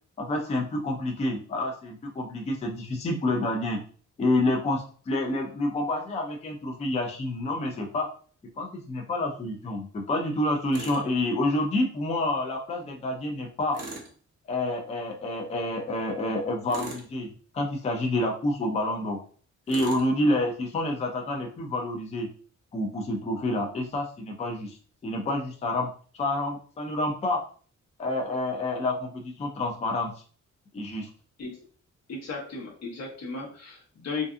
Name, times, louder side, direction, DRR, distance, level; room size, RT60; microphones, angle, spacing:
voice 1, 0.2-3.8 4.2-8.1 8.6-13.8 14.5-19.2 19.7-22.3 22.7-24.8 25.0-27.4 28.0-30.1 30.7-31.1, left 1 dB, 25° left, 1 dB, 0.4 m, -28 dB
Tools, 10.7-11.1 13.7-14.1 16.7-17.1 19.7-20.1, right 3 dB, 55° right, 0.7 m, -39 dB
voice 2, 32.1-34.3, left 4 dB, 60° left, -3 dB, 1.0 m, -35 dB
2.5 x 2.4 x 2.4 m, 0.43 s
wide cardioid pair, 155°, 30 cm